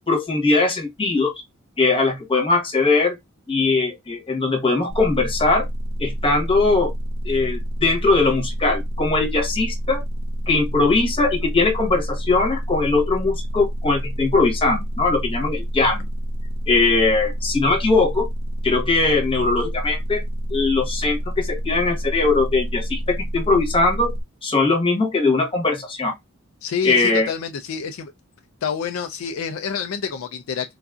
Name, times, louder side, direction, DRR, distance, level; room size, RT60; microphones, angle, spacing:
voice 1, 0.1-1.3 1.8-3.1 3.5-5.7 6.0-6.9 7.2-10.0 10.5-16.0 16.7-18.3 18.6-20.2 20.5-24.1 24.4-26.1 26.8-27.3, left 3 dB, 25° left, 1.0 m, -20 dB
sound 1, 4.9-24.2, equal, 45° right, 0.7 m, -28 dB
voice 2, 26.6-28.1 28.6-30.8, left 6 dB, 65° left, 0.4 m, -28 dB
3.9 x 2.5 x 2.3 m
head